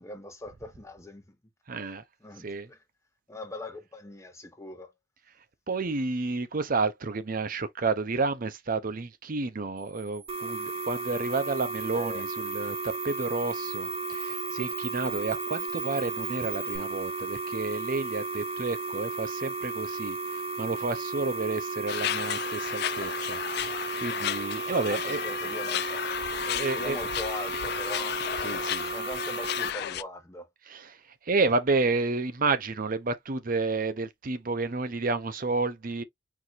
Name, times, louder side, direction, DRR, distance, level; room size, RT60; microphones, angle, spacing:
voice 1, 0.0-1.3 2.2-2.8 3.3-4.9 11.9-12.2 24.9-26.0 26.7-28.2 28.7-30.5, left 1 dB, 15° left, 1.1 m, -41 dB
voice 2, 1.7-2.0 2.4-2.7 5.7-25.2 26.4-27.0 28.4-28.9 30.7-31.0 31.2-36.0, right 3 dB, 50° right, 0.7 m, -30 dB
Camera, 9.8-16.8, right 8 dB, 65° right, 1.9 m, -42 dB
sound 1, 10.3-29.7, right 3 dB, 35° right, 1.3 m, -34 dB
sound 2, 21.9-30.0, left 12 dB, 60° left, 0.3 m, -33 dB
4.7 x 2.6 x 4.0 m
head